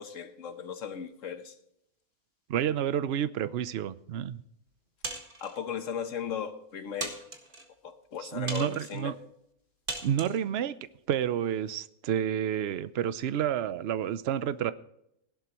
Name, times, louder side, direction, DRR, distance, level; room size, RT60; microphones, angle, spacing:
voice 1, 0.0-1.5 5.4-7.2 7.8-9.1, left 7 dB, 65° left, 9 dB, 1.3 m, -37 dB
voice 2, 2.5-4.4 8.2-9.2 10.0-10.8 11.1-14.7, right 9 dB, 55° right, 14 dB, 0.8 m, -30 dB
sound 1, 5.0-5.6 6.3-6.4 7.0-7.7 8.5-9.0 9.9-10.4, right 2 dB, 35° right, 1.9 m, -38 dB
16.5 x 11.5 x 3.0 m, 0.78 s
omnidirectional pair, 1.5 m